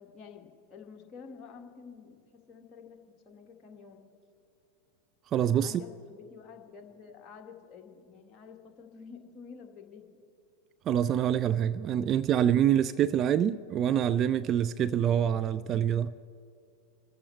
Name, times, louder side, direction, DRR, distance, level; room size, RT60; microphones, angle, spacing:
voice 1, 0.0-4.1 5.6-10.2, left 6 dB, 25° left, 1.8 m, -50 dB
voice 2, 5.3-5.8 10.9-16.1, right 9 dB, 30° right, 0.3 m, -26 dB
27.5 x 14.5 x 3.3 m
figure-of-eight pair, 90°, 0 cm